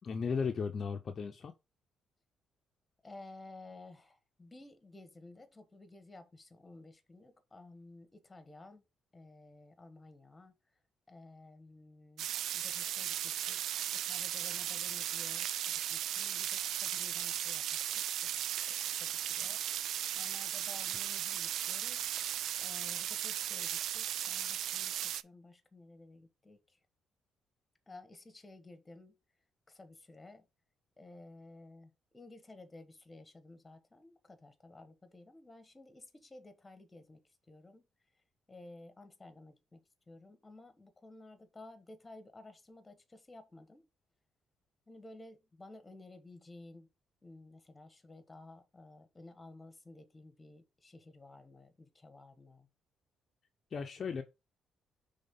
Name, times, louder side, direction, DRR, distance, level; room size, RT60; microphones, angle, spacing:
voice 1, 0.0-1.5 53.7-54.2, left 5 dB, 45° left, 0.7 m, -35 dB
voice 2, 3.0-8.8 9.1-10.5 11.1-17.9 18.6-19.6 20.1-22.1 22.6-26.8 27.9-29.2 29.7-30.5 31.0-37.2 37.5-37.8 38.5-43.8 44.9-46.9 47.2-52.7, left 2 dB, 20° left, 1.4 m, -54 dB
sound 1, 12.2-25.2, right 11 dB, 75° right, 0.3 m, -36 dB
5.3 x 3.6 x 5.3 m
cardioid pair, 90°, 0 cm